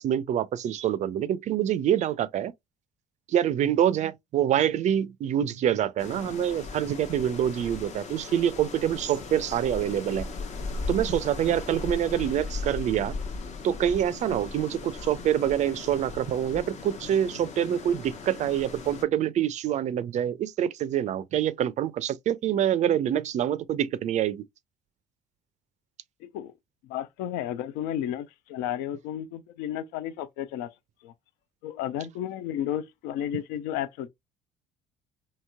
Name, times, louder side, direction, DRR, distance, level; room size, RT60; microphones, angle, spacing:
voice 1, 0.0-2.5 3.3-10.3 10.9-13.1 13.6-24.4, right 10 dB, 45° right, 0.4 m, -26 dB
sound 1, 6.0-19.0, left 3 dB, 45° left, 0.7 m, -37 dB
voice 2, 26.2-26.5 26.8-30.7 31.0-31.1 31.6-34.1, left 11 dB, 70° left, 0.4 m, -32 dB
2.9 x 2.8 x 2.2 m
hypercardioid pair, 60°, 16 cm